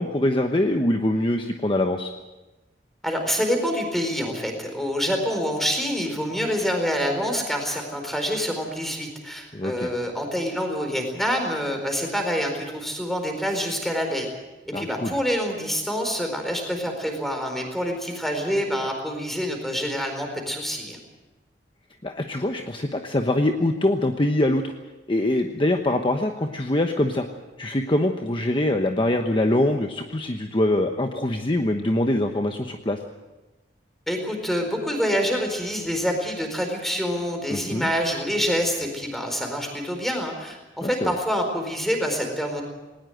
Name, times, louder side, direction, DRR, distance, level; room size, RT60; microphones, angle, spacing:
voice 1, 0.0-2.1 9.5-9.9 14.7-15.1 22.0-24.6 25.1-27.3 27.6-33.0 37.5-37.9 40.8-41.1, left 1 dB, 30° left, 4 dB, 1.1 m, -23 dB
voice 2, 3.0-14.3 14.7-21.0 34.1-42.6, equal, ahead, 4 dB, 4.4 m, -26 dB
19.5 x 19.5 x 8.0 m, 1.1 s
head